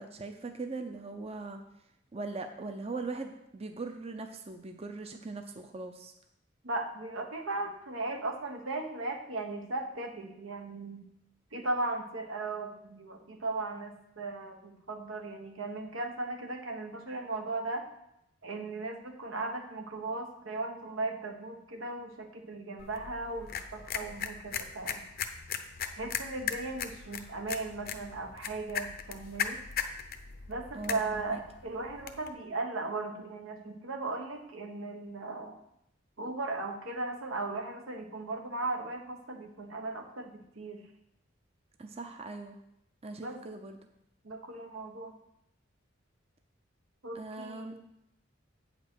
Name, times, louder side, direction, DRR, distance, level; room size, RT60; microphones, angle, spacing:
voice 1, 0.0-1.6 2.1-6.1 30.7-31.4 41.8-42.6 43.0-43.8 47.1-47.7, right 3 dB, 30° right, 6 dB, 0.6 m, -40 dB
voice 2, 6.6-11.1 11.5-17.9 18.4-25.1 25.9-29.6 30.5-35.6 36.2-40.8 43.2-43.4 44.2-45.1 47.0-47.8, right 2 dB, 90° right, 3 dB, 1.3 m, -37 dB
sound 1, 22.8-32.3, left 7 dB, 50° left, 0.7 m, -39 dB
8.6 x 5.2 x 6.2 m, 0.79 s
head